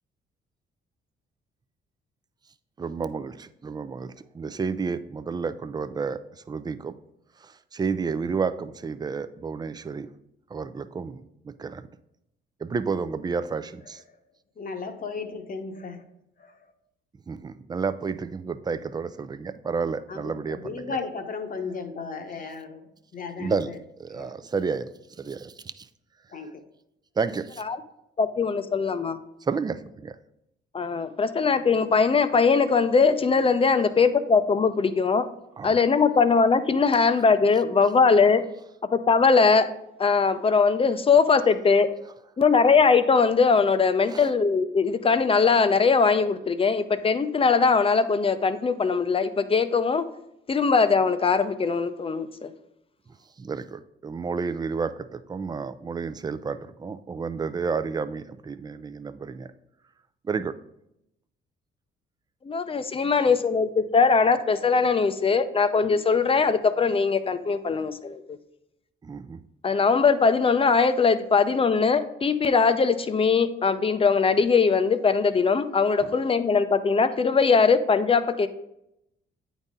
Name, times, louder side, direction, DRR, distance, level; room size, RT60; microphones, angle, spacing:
voice 1, 2.8-6.2 6.5-7.0 7.4-10.1 10.5-11.9 12.6-14.0 17.3-21.0 23.4-23.7 24.0-24.9 25.2-25.9 27.2-27.6 29.4-30.2 35.6-35.8 44.1-44.3 53.4-59.5 60.3-60.5 69.0-69.4 76.0-76.1, right 5 dB, 20° right, 13 dB, 0.4 m, -31 dB
voice 2, 14.6-16.0 16.4-16.5 20.1-22.9 23.1-23.8 24.1-24.3 26.3-26.6, left 4 dB, 45° left, 5 dB, 0.9 m, -35 dB
voice 3, 28.2-29.2 30.7-35.3 35.6-38.4 38.9-39.7 40.0-41.9 42.4-50.0 50.5-52.5 62.4-68.2 69.6-78.5, left 5 dB, 30° left, 11 dB, 0.5 m, -21 dB
8.8 x 4.1 x 3.6 m, 0.82 s
cardioid pair, 90°, 20 cm